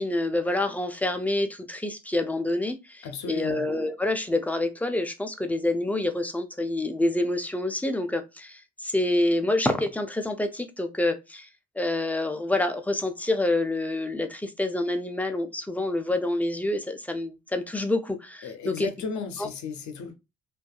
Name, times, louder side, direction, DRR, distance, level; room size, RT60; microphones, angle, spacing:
voice 1, 0.0-11.5 11.8-18.9 19.4-19.5, left 2 dB, 5° left, 0.3 m, -27 dB
voice 2, 3.0-3.6 18.4-20.2, left 5 dB, 70° left, 0.6 m, -34 dB
2.6 x 2.3 x 2.2 m
cardioid pair, 90°, 30 cm